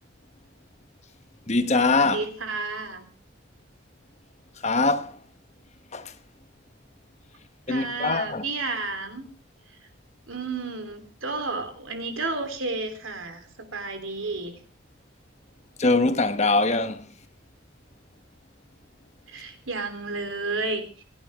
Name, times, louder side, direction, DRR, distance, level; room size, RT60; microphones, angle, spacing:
voice 1, 1.5-2.2 4.6-5.2 5.9-6.1 7.7-8.4 15.8-17.1, left 3 dB, 35° left, 1.2 m, -22 dB
voice 2, 2.1-3.1 7.7-9.3 10.3-14.6 19.3-21.0, right 3 dB, 85° right, 3.5 m, -32 dB
28.0 x 11.5 x 3.6 m
head